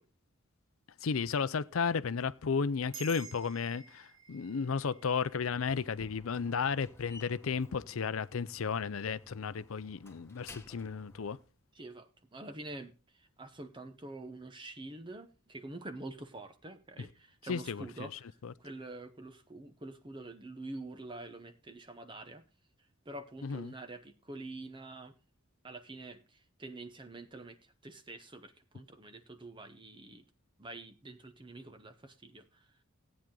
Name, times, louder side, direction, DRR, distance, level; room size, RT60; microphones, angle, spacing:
voice 1, 1.0-11.4 17.5-18.5 23.4-23.7, left 5 dB, 75° left, 0.5 m, -34 dB
sound 1, 2.9-7.6, right 7 dB, 70° right, 3.6 m, -53 dB
Slam, 5.3-11.5, left 2 dB, 10° left, 1.4 m, -56 dB
voice 2, 11.7-22.4 23.0-25.1 25.6-30.2 30.6-32.7, right 2 dB, 25° right, 0.8 m, -46 dB
15.0 x 8.9 x 3.8 m
head